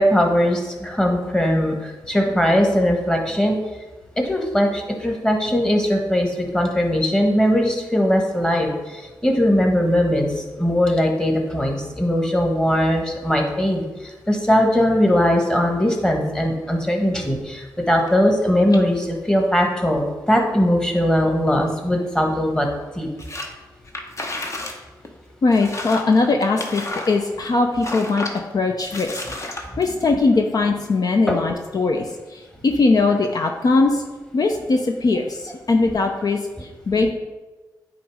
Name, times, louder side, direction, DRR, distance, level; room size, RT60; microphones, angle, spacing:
voice 1, 0.0-3.6 4.2-22.7 22.9-23.1 31.3-31.4, equal, 10° left, 2 dB, 1.4 m, -20 dB
sound 1, 23.2-23.5 23.9-24.8 25.0-25.1 25.5-27.5 27.8-28.4 28.9-29.9, left 2 dB, 40° left, 1.0 m, -31 dB
voice 2, 25.4-28.3 28.5-29.2 29.6-34.0 34.3-37.1, left 3 dB, 55° left, 3 dB, 0.6 m, -20 dB
8.5 x 3.1 x 4.8 m, 1.2 s
cardioid pair, 55°, 8 cm